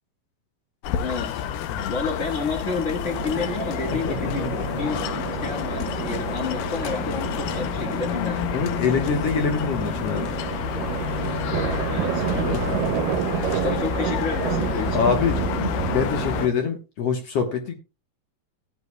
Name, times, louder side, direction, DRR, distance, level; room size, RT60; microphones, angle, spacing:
sound 1, 0.8-16.5, left 8 dB, 80° left, 2.4 m, -29 dB
voice 1, 1.0-1.4 1.9-8.4 11.9-12.6 13.5-15.0, left 4 dB, 35° left, 1.2 m, -30 dB
sound 2, 3.0-16.5, right 11 dB, 75° right, 2.5 m, -30 dB
voice 2, 3.9-4.9 8.5-10.3 12.5-12.9 13.2-13.6 14.9-17.7, left 6 dB, 60° left, 1.9 m, -26 dB
16.0 x 10.5 x 2.3 m
omnidirectional pair, 4.0 m